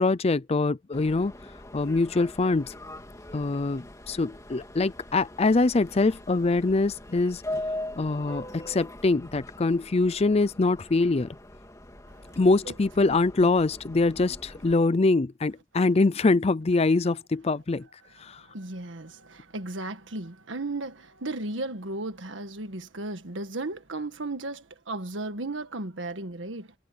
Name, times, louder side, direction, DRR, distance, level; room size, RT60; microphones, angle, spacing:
voice 1, 0.0-1.3 1.7-2.7 3.3-7.4 8.0-11.3 12.4-17.9 18.2-18.4, left 3 dB, 35° left, 0.5 m, -24 dB
Subway metro underground, 0.9-14.7, left 1 dB, 20° left, 3.1 m, -41 dB
voice 2, 13.0-13.5 18.2-26.7, right 2 dB, 85° right, 1.6 m, -35 dB
head